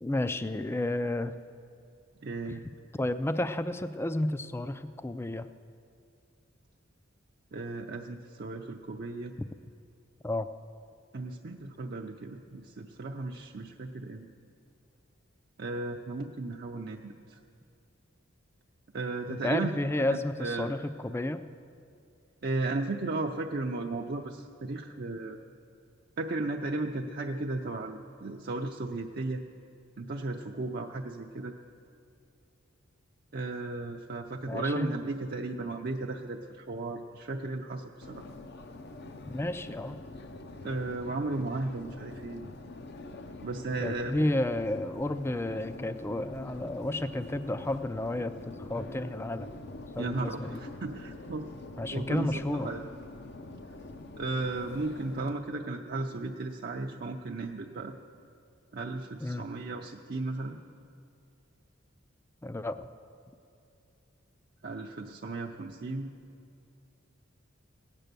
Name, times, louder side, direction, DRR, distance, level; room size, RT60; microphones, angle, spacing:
voice 1, 0.0-1.3 2.5-2.6 2.9-5.5 9.4-9.5 10.2-10.5 19.3-21.5 34.5-34.9 39.3-40.0 43.8-49.5 50.0-50.6 51.8-52.7 59.2-59.5 62.4-62.9, left 1 dB, 10° left, 11 dB, 0.4 m, -31 dB
voice 2, 2.2-2.6 7.5-9.3 11.1-14.2 15.6-17.4 18.9-19.8 20.1-20.7 22.4-25.4 26.2-29.4 30.0-31.5 33.3-38.2 40.6-42.4 43.4-44.3 50.0-51.5 51.9-52.8 54.1-58.0 58.7-60.6 64.6-66.1, right 2 dB, 50° right, 1 dB, 0.6 m, -35 dB
Subway metro underground, 38.0-55.3, left 2 dB, 55° left, 0.7 m, -45 dB
16.5 x 9.1 x 6.8 m, 2.6 s
head